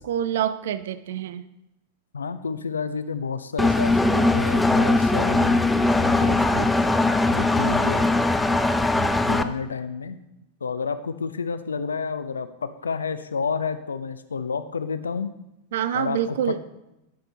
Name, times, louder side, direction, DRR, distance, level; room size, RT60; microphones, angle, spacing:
voice 1, 0.1-1.5 15.7-16.6, right 10 dB, 60° right, 14 dB, 0.3 m, -26 dB
voice 2, 2.1-5.6 6.0-6.7 7.3-8.0 8.9-10.2 10.6-15.3 15.9-16.6, left 5 dB, 70° left, 12 dB, 0.4 m, -30 dB
Engine, 3.6-9.4, left 2 dB, 5° left, 0.4 m, -20 dB
11.5 x 5.2 x 3.4 m, 0.90 s
figure-of-eight pair, 90°, 0 cm